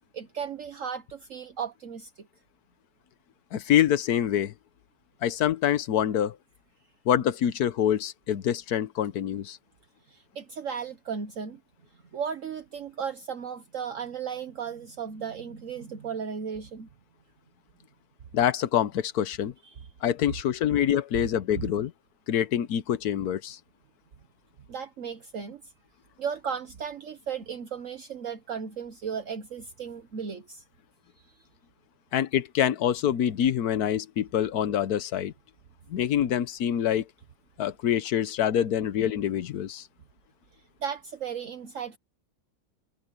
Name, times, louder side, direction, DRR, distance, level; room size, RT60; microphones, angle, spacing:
voice 1, 0.1-2.3 10.1-11.6 12.1-16.9 19.6-19.8 21.1-21.2 21.6-21.7 24.7-25.7 26.2-30.6 40.8-42.0, right 7 dB, 60° right, 1.4 m, -35 dB
voice 2, 3.5-4.5 5.2-6.4 7.1-9.6 18.3-19.5 20.0-21.9 22.3-23.6 32.1-35.3 35.9-37.0 37.6-39.9, left 10 dB, 85° left, 1.4 m, -25 dB
omnidirectional pair, 1.6 m